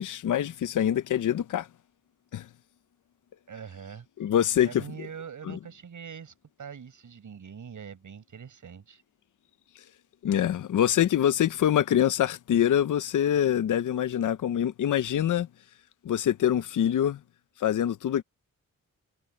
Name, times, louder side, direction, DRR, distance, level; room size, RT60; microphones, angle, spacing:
voice 1, 0.0-1.7 2.3-2.5 4.2-4.8 5.5-5.6 10.2-15.5 16.0-17.2 17.6-18.2, left 10 dB, 65° left, 0.7 m, -25 dB
voice 2, 3.5-4.1 4.6-9.0, right 7 dB, 65° right, 6.7 m, -43 dB
wide cardioid pair, 125°, 33 cm